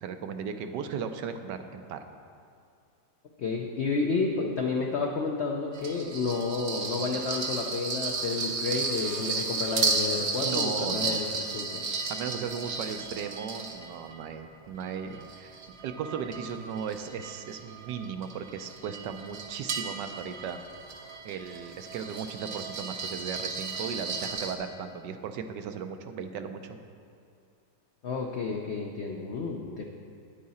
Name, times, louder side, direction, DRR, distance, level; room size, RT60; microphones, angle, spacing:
voice 1, 0.0-2.0 10.4-11.2 12.1-20.6 21.2-26.8, right 7 dB, 80° right, 8 dB, 1.2 m, -36 dB
voice 2, 3.4-11.8 28.0-29.8, left 4 dB, 75° left, 1 dB, 0.6 m, -31 dB
sound 1, 5.7-14.3 14.8-24.5, right 4 dB, 50° right, 0.8 m, -34 dB
9.5 x 8.6 x 4.2 m, 2.3 s
omnidirectional pair, 1.9 m